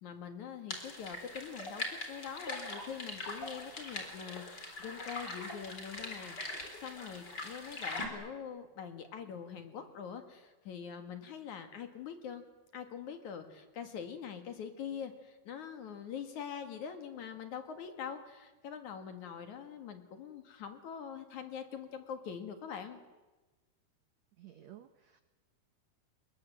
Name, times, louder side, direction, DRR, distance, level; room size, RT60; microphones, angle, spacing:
voice 1, 0.0-12.4 12.7-23.0, left 7 dB, 55° left, 7 dB, 2.7 m, -44 dB
sound 1, 0.7-8.1, left 2 dB, 25° left, 4.0 m, -42 dB
voice 2, 24.4-25.2, right 12 dB, 85° right, 9 dB, 1.5 m, -54 dB
29.0 x 21.5 x 7.7 m, 1.2 s
omnidirectional pair, 4.7 m